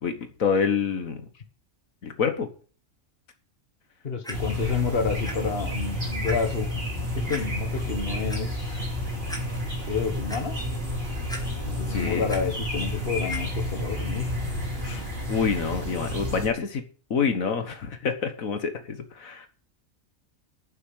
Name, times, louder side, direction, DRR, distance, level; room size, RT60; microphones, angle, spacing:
voice 1, 0.0-1.2 2.0-2.5 11.9-12.3 14.8-16.8 17.1-19.5, left 6 dB, 80° left, 7 dB, 1.8 m, -27 dB
voice 2, 4.0-6.9 7.3-8.8 9.9-10.5 11.7-14.3, left 5 dB, 45° left, 6 dB, 1.8 m, -29 dB
Clock, 4.2-4.3 5.3-5.4 5.8-5.9 6.2-6.3 7.3-7.4 8.1-8.4 8.9-9.0 9.3-9.4 9.9-10.4 11.3-11.8 12.1-12.4 13.3-13.4 14.1-14.2, equal, 5° left, 2.4 m, -37 dB
sound 1, 4.3-16.5, left 1 dB, 45° right, 4.8 m, -31 dB
9.2 x 7.7 x 7.8 m, 0.41 s
omnidirectional pair, 1.4 m